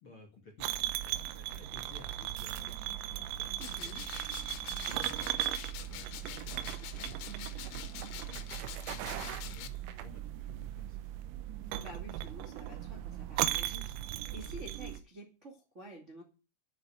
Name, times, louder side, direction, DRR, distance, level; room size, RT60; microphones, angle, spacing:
voice 1, 0.0-5.4 5.9-11.3, left 3 dB, 40° left, 1 dB, 1.9 m, -55 dB
sound 1, 0.6-15.0, right 13 dB, 90° right, 3.6 m, -38 dB
sound 2, 3.6-9.7, left 13 dB, 85° left, 3.7 m, -46 dB
voice 2, 3.6-4.0 6.4-6.5 11.8-16.2, right 1 dB, 60° right, 1 dB, 0.7 m, -50 dB
sound 3, 6.3-10.7, right 10 dB, 75° right, 3.5 m, -45 dB
9.5 x 7.8 x 8.9 m, 0.32 s
omnidirectional pair, 5.9 m